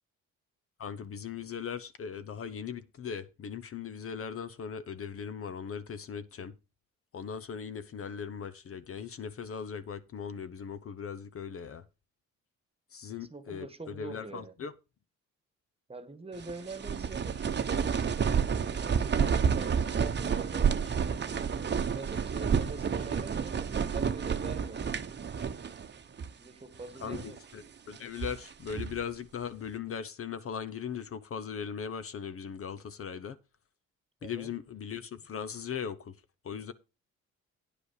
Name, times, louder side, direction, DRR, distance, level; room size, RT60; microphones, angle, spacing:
voice 1, 0.8-6.5 7.1-11.8 12.9-14.7 27.0-33.4 34.2-36.1 36.4-36.7, left 7 dB, 50° left, 0.8 m, -39 dB
voice 2, 13.2-14.5 15.9-21.0 21.6-24.9 26.2-27.4 34.2-34.5, right 3 dB, 20° right, 1.5 m, -44 dB
sound 1, 16.4-25.9 26.2-26.3 26.9-27.4 27.9-29.0, right 6 dB, 35° right, 1.0 m, -30 dB
9.9 x 5.2 x 6.5 m
cardioid pair, 90°, 30 cm